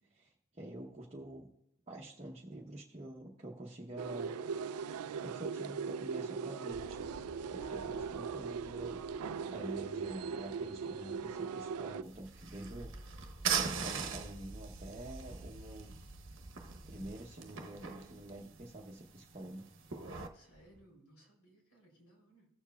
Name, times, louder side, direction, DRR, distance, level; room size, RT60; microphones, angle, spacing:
voice 1, 0.1-1.5 1.9-4.3 5.2-7.0 7.5-16.0 16.9-19.6, right 1 dB, 30° right, -2 dB, 0.8 m, -47 dB
sound 1, 4.0-12.0, right 5 dB, 85° right, 0.4 m, -39 dB
sound 2, 6.7-19.0 19.3-20.2 20.5-20.8, right 1 dB, 65° left, 2.8 m, -53 dB
sound 3, 12.0-20.3, right 6 dB, 55° right, 0.9 m, -41 dB
voice 2, 20.3-22.5, right 1 dB, 85° left, -2 dB, 3.4 m, -63 dB
16.5 x 7.2 x 2.3 m, 0.82 s
head